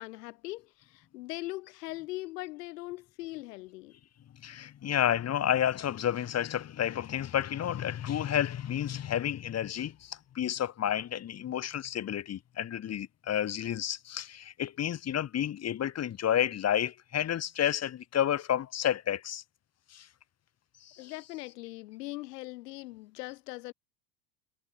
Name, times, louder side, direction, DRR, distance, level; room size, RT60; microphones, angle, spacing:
voice 1, 0.0-3.9 21.0-23.7, left 20 dB, 75° left, 6.4 m, -41 dB
voice 2, 4.4-19.4 19.9-20.1 20.8-21.1, left 10 dB, 30° left, 2.5 m, -31 dB
supercardioid pair, 115°, 48 cm